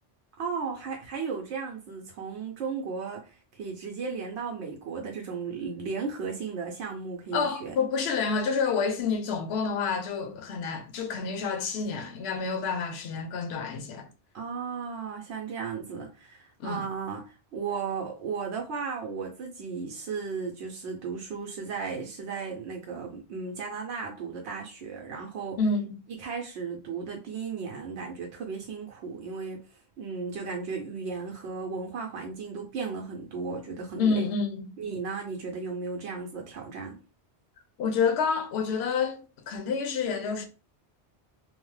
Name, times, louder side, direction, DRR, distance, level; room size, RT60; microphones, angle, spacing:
voice 1, 0.4-7.7 14.3-25.6 26.2-29.7 30.0-34.3 34.8-37.0, right 5 dB, 90° right, 0.9 m, -35 dB
voice 2, 7.3-14.1 16.6-16.8 25.6-25.9 34.0-34.7 37.8-40.5, left 5 dB, 75° left, 0.8 m, -28 dB
2.8 x 2.0 x 3.1 m
omnidirectional pair, 1.1 m